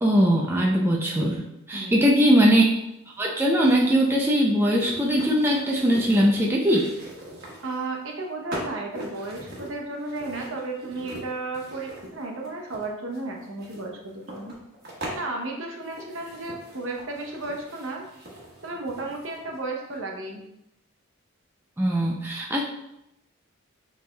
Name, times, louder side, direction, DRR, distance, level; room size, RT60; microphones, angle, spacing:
voice 1, 0.0-1.4 1.7-2.7 3.2-6.9 21.8-22.6, equal, 10° right, -1 dB, 0.4 m, -20 dB
voice 2, 1.7-2.1 7.6-14.5 15.1-18.1 18.6-20.4, right 2 dB, 70° right, 1 dB, 0.8 m, -33 dB
sound 1, 2.1-2.2 3.6-7.9 8.5-15.2 15.8-19.6 19.9-20.0, right 1 dB, 50° right, 1.2 m, -41 dB
6.6 x 3.3 x 2.2 m, 0.85 s
head